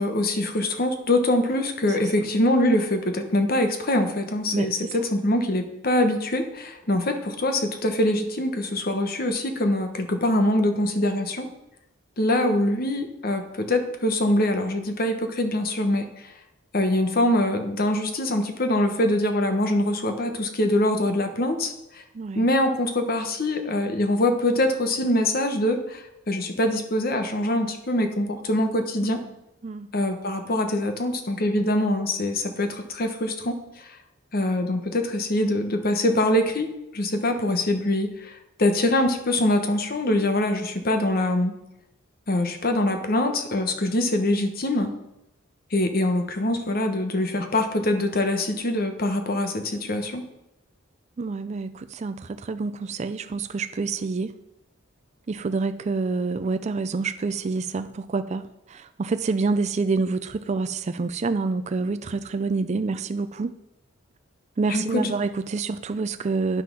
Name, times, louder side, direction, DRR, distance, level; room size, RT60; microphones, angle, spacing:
voice 1, 0.0-11.5 12.2-16.3 16.7-22.0 22.3-29.2 29.9-34.0 34.3-41.5 42.3-44.9 45.7-50.2 64.7-65.1, left 1 dB, 50° left, 6 dB, 1.1 m, -24 dB
voice 2, 22.1-22.5 29.0-29.3 29.6-29.9 51.2-54.3 55.3-63.5 64.6-66.6, right 4 dB, 35° right, 10 dB, 0.4 m, -27 dB
9.3 x 5.9 x 6.1 m, 0.88 s
head